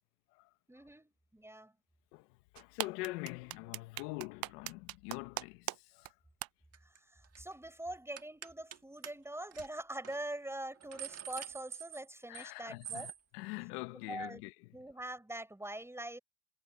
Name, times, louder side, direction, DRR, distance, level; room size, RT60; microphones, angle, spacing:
voice 1, 0.7-1.7 6.8-13.1 14.1-14.4 14.7-16.2, right 1 dB, 5° right, 5.1 m, -44 dB
voice 2, 2.1-6.2 12.3-14.5, left 22 dB, 85° left, 1.3 m, -44 dB
sound 1, 2.6-5.8 6.1-6.2 6.4-6.5, right 19 dB, 50° right, 0.6 m, -38 dB
sound 2, 6.7-7.0 7.2-7.5 8.2-8.8 9.0-9.1 9.5-9.7 10.0-10.2 10.6-12.5 12.8-13.2, right 8 dB, 30° right, 1.6 m, -45 dB
supercardioid pair, 105°, 46 cm